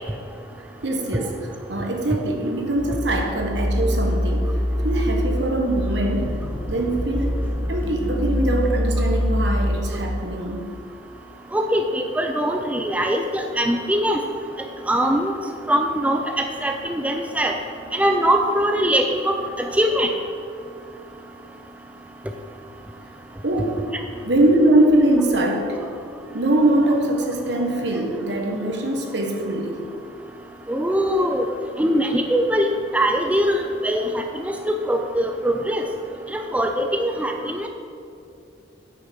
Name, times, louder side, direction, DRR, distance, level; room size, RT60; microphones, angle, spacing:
voice 1, 0.6-4.6 4.8-6.4 6.7-7.4 7.7-10.7 17.8-17.9 23.4-23.8 24.2-25.8 26.3-29.8, right 1 dB, 65° right, 2 dB, 1.3 m, -22 dB
sound 1, 2.8-9.9, equal, 10° left, 1.4 m, -24 dB
voice 2, 11.5-14.2 14.9-15.3 15.7-17.6 17.9-20.1 30.7-31.5 31.8-32.7 32.9-35.8 36.3-37.7, equal, 10° right, 4 dB, 0.4 m, -22 dB
9.0 x 5.9 x 5.8 m, 2.6 s
head